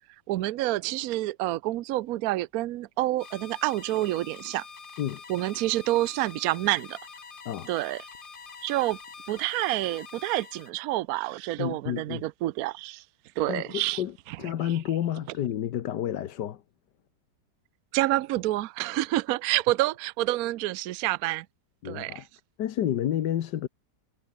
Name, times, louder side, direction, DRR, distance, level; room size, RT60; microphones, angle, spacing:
voice 1, 0.3-4.6 5.3-7.0 7.7-8.0 8.6-9.0 9.3-13.0 13.4-14.0 17.9-21.5 21.8-22.2, right 17 dB, 65° right, 1.0 m, -28 dB
sound 1, 3.2-10.7, left 5 dB, 35° left, 1.3 m, -46 dB
voice 2, 11.6-12.2 13.5-14.1 14.4-16.6 21.8-22.3 22.6-23.7, left 11 dB, 75° left, 1.6 m, -30 dB
omnidirectional pair, 1.9 m